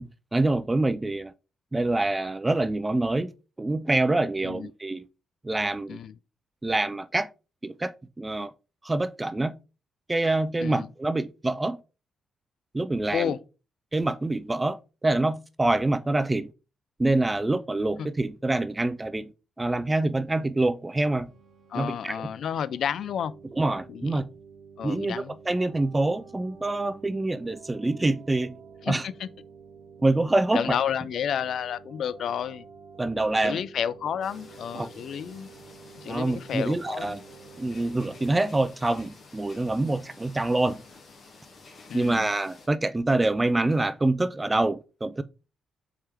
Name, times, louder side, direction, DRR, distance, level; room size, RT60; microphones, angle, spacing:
voice 1, 0.0-1.3 1.7-3.3 3.6-5.0 5.4-6.0 6.6-7.3 7.6-8.5 8.8-9.5 10.1-11.8 12.7-13.3 13.9-16.5 17.0-19.3 19.6-21.3 21.8-22.2 23.6-24.2 24.8-28.6 28.9-29.0 30.0-30.8 33.0-33.6 34.7-34.9 36.0-37.2 37.6-40.8 41.9-45.2, right 2 dB, 20° right, 0.3 m, -26 dB
sound 1, 20.9-38.7, right 6 dB, 55° right, 1.0 m, -50 dB
voice 2, 21.7-23.3 23.9-24.2 24.8-25.4 28.8-29.3 30.5-32.7 33.4-35.5 36.0-37.2 41.9-42.3, left 8 dB, 70° left, 0.3 m, -31 dB
sound 2, 34.2-42.7, left 3 dB, 45° left, 1.4 m, -51 dB
4.3 x 3.6 x 3.4 m
cardioid pair, 85°, 0 cm